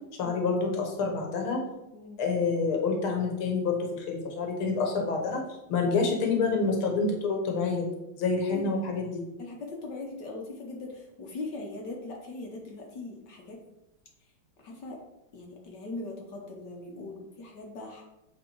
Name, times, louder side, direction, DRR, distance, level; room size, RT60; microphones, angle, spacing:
voice 1, 0.2-1.6 2.2-5.4 5.7-7.9 8.2-9.2, left 4 dB, 85° left, 2 dB, 2.1 m, -27 dB
voice 2, 8.5-8.8 9.4-13.6 14.6-15.0 15.3-18.0, left 2 dB, 60° left, 0 dB, 1.5 m, -40 dB
8.0 x 3.7 x 4.5 m, 0.93 s
omnidirectional pair, 2.3 m